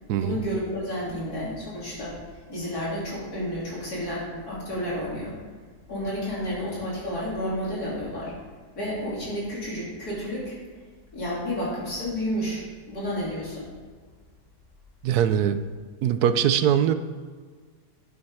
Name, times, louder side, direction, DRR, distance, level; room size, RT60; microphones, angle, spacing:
voice 1, 0.2-2.2 2.5-5.4 5.9-8.3 8.8-10.6 11.1-13.7, equal, 70° left, -6 dB, 3.7 m, -31 dB
voice 2, 15.0-15.6 16.0-16.9, right 9 dB, 75° right, 10 dB, 1.1 m, -21 dB
11.0 x 7.2 x 4.8 m, 1.5 s
omnidirectional pair, 1.7 m